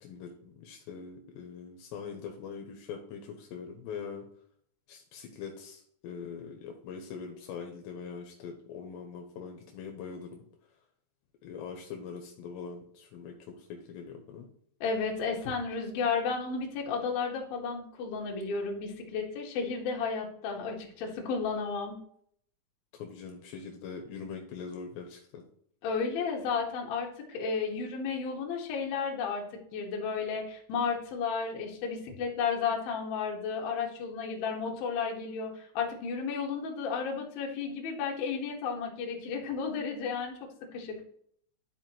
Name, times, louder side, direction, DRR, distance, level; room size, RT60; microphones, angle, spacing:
voice 1, 0.0-4.2 4.9-10.4 11.4-14.5 22.9-25.4, left 6 dB, 80° left, 3 dB, 3.0 m, -42 dB
voice 2, 14.8-22.0 25.8-29.4 29.7-40.3 40.7-41.0, left 5 dB, 65° left, 0 dB, 2.9 m, -33 dB
11.0 x 5.1 x 3.0 m, 0.64 s
omnidirectional pair, 5.2 m